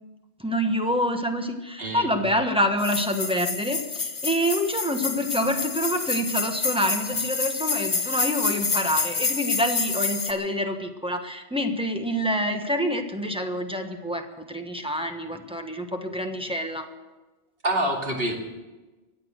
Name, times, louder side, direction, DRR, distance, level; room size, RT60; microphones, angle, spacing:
voice 1, 0.4-16.9, equal, 5° right, 4 dB, 1.2 m, -27 dB
voice 2, 1.8-2.1 17.6-18.3, right 1 dB, 60° right, 0 dB, 2.8 m, -26 dB
sound 1, 2.8-10.3, left 4 dB, 50° left, 1.2 m, -28 dB
24.0 x 8.6 x 6.6 m, 1.2 s
omnidirectional pair, 1.1 m